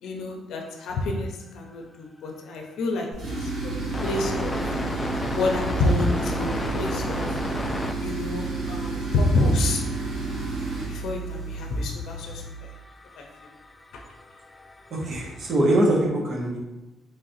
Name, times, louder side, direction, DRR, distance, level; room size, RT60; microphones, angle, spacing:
voice 1, 0.0-4.5 5.3-7.2 8.0-9.8 10.8-12.4 13.2-13.5 13.9-14.0, left 2 dB, 80° left, 1 dB, 0.6 m, -28 dB
sound 1, 2.6-2.7 3.7-8.0 8.3-8.5 8.8-15.6, left 2 dB, 20° left, 0.3 m, -34 dB
Tools, 3.1-12.6, right 3 dB, 85° right, 1.1 m, -31 dB
voice 2, 14.9-16.6, right 1 dB, 60° right, -2 dB, 1.0 m, -23 dB
4.0 x 3.1 x 2.7 m, 1.0 s
cardioid pair, 90°, 0 cm